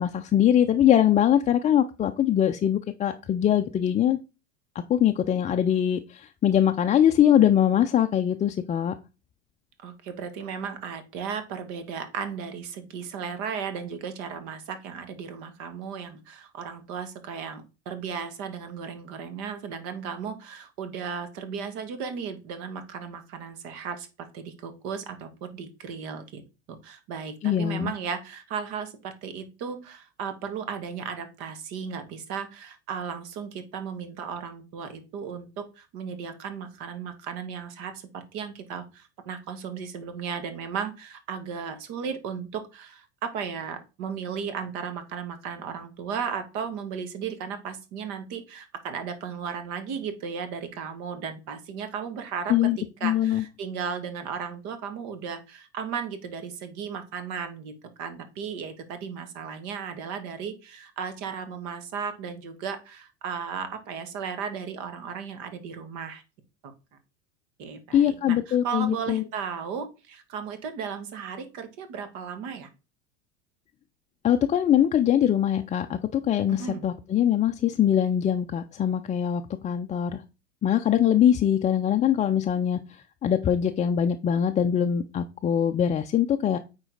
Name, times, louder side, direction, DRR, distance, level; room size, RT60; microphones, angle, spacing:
voice 1, 0.0-4.2 4.7-8.9 27.4-27.9 52.5-52.8 53.0-53.4 67.9-69.2 74.2-80.2 80.6-86.6, left 10 dB, 20° left, 0.4 m, -22 dB
voice 2, 9.8-26.4 26.7-52.5 53.0-66.2 66.6-66.7 67.6-72.7 76.5-76.9, right 6 dB, 55° right, 1.7 m, -35 dB
8.8 x 4.0 x 3.9 m
hypercardioid pair, 85°, 35 cm